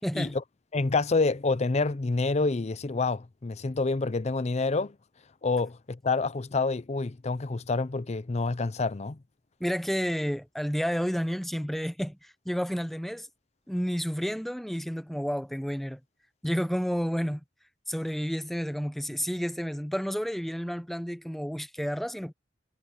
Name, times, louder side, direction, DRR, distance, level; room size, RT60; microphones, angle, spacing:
voice 1, 0.0-0.3 9.6-13.3 13.7-16.0 16.4-17.4 17.9-22.3, equal, ahead, 0.9 m, -30 dB
voice 2, 0.7-5.0 5.4-9.2, left 3 dB, 40° left, 0.6 m, -27 dB
head